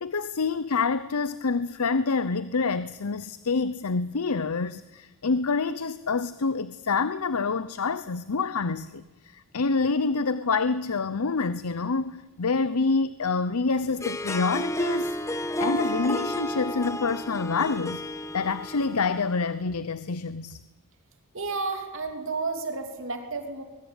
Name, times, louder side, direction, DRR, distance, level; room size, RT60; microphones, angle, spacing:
voice 1, 0.0-9.0 9.3-15.2 15.6-18.0 18.3-20.6, left 4 dB, 75° left, 15 dB, 0.7 m, -27 dB
Harp, 13.9-19.3, equal, 15° left, 1.3 m, -31 dB
voice 2, 21.3-23.6, right 3 dB, 60° right, 5 dB, 3.0 m, -31 dB
22.0 x 21.5 x 8.9 m, 1.2 s
head